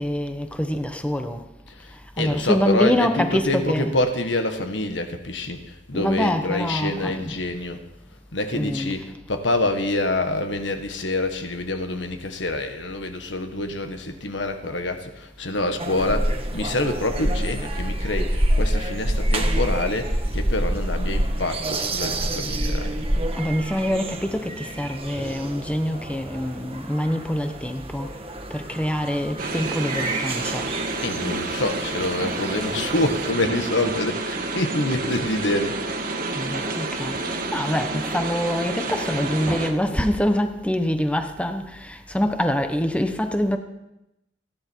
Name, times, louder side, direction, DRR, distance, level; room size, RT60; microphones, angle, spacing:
voice 1, 0.0-1.4 2.2-3.9 5.9-7.2 8.5-9.1 23.3-28.1 28.5-30.7 36.3-43.6, equal, 5° left, 6 dB, 1.1 m, -25 dB
voice 2, 1.7-7.8 8.3-22.9 31.0-36.0, left 2 dB, 85° left, 6 dB, 1.7 m, -26 dB
sound 1, 15.8-33.3, right 1 dB, 30° right, 1.7 m, -27 dB
sound 2, 29.4-39.7, right 3 dB, 50° right, 1.8 m, -29 dB
29.0 x 10.5 x 4.6 m, 0.88 s
head